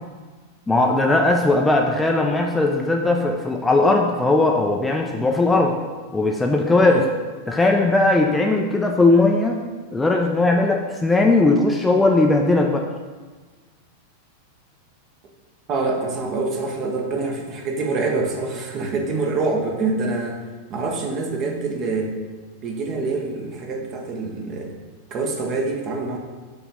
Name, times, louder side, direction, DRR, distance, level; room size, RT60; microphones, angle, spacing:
voice 1, 0.7-5.8 6.1-7.0 7.5-9.6 9.9-12.8, left 2 dB, 10° left, 1 dB, 0.5 m, -18 dB
voice 2, 15.7-20.4 20.7-22.1 22.6-24.7 25.1-26.2, right 3 dB, 35° right, 2 dB, 1.0 m, -25 dB
5.7 x 3.6 x 5.3 m, 1.4 s
figure-of-eight pair, 90°, 0 cm